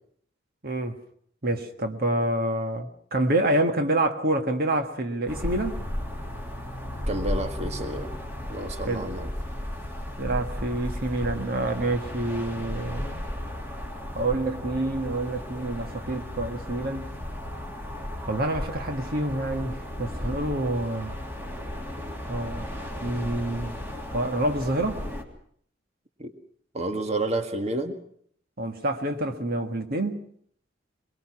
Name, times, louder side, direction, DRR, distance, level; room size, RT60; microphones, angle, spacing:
voice 1, 0.6-1.0 1.4-5.8 8.9-9.1 10.2-13.2 14.2-17.1 18.3-21.2 22.3-22.7 23.0-23.8 24.1-25.0 28.6-30.2, right 1 dB, 55° right, 6 dB, 1.7 m, -27 dB
sound 1, 5.3-25.2, left 1 dB, 10° right, 3.1 m, -35 dB
voice 2, 7.1-8.1 8.5-9.3 26.2-26.3 26.7-28.0, right 2 dB, 35° right, 7 dB, 1.8 m, -30 dB
22.5 x 22.5 x 6.2 m, 0.63 s
head